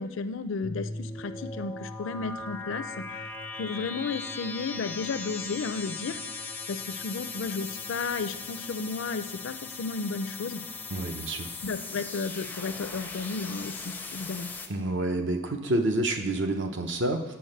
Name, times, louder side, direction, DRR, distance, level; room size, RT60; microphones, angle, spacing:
voice 1, 0.0-3.2 3.5-10.6 11.6-14.5, left 4 dB, 70° left, 11 dB, 0.4 m, -33 dB
sound 1, 0.6-14.7, left 3 dB, 10° left, 0.4 m, -38 dB
voice 2, 10.9-11.5 14.7-17.2, right 1 dB, 60° right, 5 dB, 0.8 m, -28 dB
7.8 x 4.4 x 6.5 m, 1.0 s
head